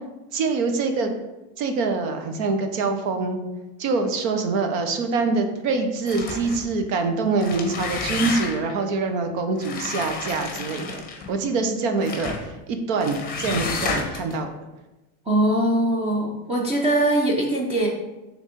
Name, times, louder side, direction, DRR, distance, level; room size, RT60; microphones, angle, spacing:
voice 1, 0.3-1.1 1.6-3.4 3.8-14.5, right 3 dB, 70° right, 6 dB, 1.0 m, -25 dB
sound 1, 6.0-6.7 7.3-8.8 9.6-11.3 12.0-12.5 13.0-14.3, left 4 dB, 20° left, 0.9 m, -31 dB
voice 2, 15.2-17.9, right 1 dB, 15° right, -3 dB, 0.6 m, -21 dB
6.3 x 3.5 x 5.1 m, 1.1 s
cardioid pair, 155°, 42 cm